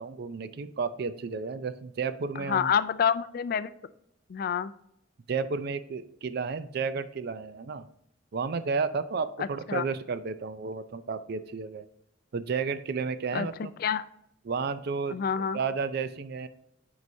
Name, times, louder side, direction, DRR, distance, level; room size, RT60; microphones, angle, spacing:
voice 1, 0.0-2.7 5.3-7.8 8.3-11.8 12.3-13.7 14.5-16.5, right 5 dB, 55° right, 13 dB, 0.4 m, -32 dB
voice 2, 2.4-3.7 4.3-4.7 9.4-9.8 13.3-13.5 13.8-14.0 15.1-15.6, left 7 dB, 50° left, 15 dB, 0.3 m, -28 dB
9.6 x 4.7 x 2.7 m, 0.76 s
head